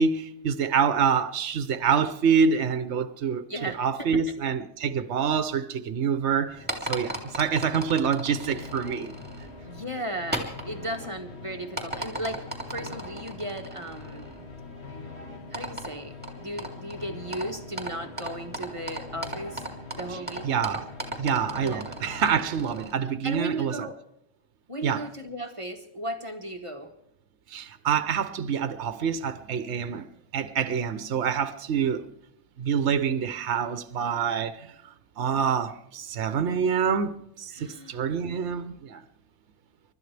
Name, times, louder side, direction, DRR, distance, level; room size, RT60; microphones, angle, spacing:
voice 1, 0.0-9.2 20.4-20.9 21.2-23.9 24.8-25.0 27.5-30.1 30.3-32.1 32.6-34.7 35.2-39.0, right 6 dB, 65° right, 1.2 m, -26 dB
voice 2, 3.5-4.2 9.7-12.4 12.7-14.3 15.5-19.7 20.0-20.5 21.6-21.9 23.2-24.0 24.7-26.9 37.5-38.0, right 1 dB, 25° right, 1.3 m, -36 dB
sound 1, 6.3-23.2, left 4 dB, 60° left, 1.8 m, -44 dB
sound 2, 6.5-22.9, right 2 dB, 10° right, 2.8 m, -39 dB
29.5 x 13.0 x 3.4 m
omnidirectional pair, 1.3 m